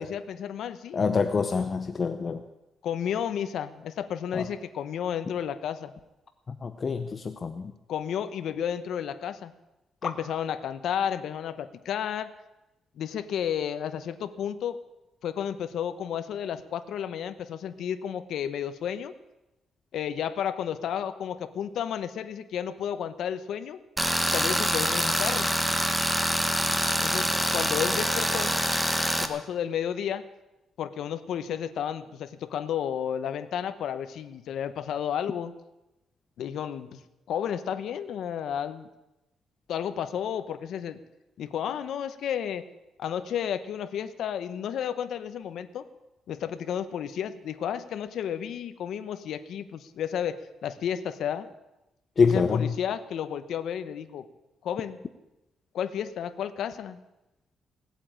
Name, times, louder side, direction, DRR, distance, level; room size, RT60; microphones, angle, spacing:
voice 1, 0.0-1.0 2.8-5.9 7.9-9.5 10.0-12.3 13.0-14.8 15.2-19.1 19.9-23.8 24.3-25.5 27.0-28.6 29.2-30.3 30.8-35.5 36.4-37.0 37.3-38.9 39.7-41.0 41.4-42.6 43.0-45.8 46.3-51.5 52.2-54.3 54.6-55.0 55.7-57.0, left 9 dB, 70° left, 11 dB, 1.0 m, -32 dB
voice 2, 0.9-2.4 4.3-4.4 6.6-7.7 10.0-10.1 52.2-52.7, left 5 dB, 35° left, 8 dB, 0.8 m, -25 dB
Tools, 24.0-29.3, equal, 5° right, 1.1 m, -25 dB
17.5 x 8.5 x 8.7 m, 0.98 s
cardioid pair, 125°, 0 cm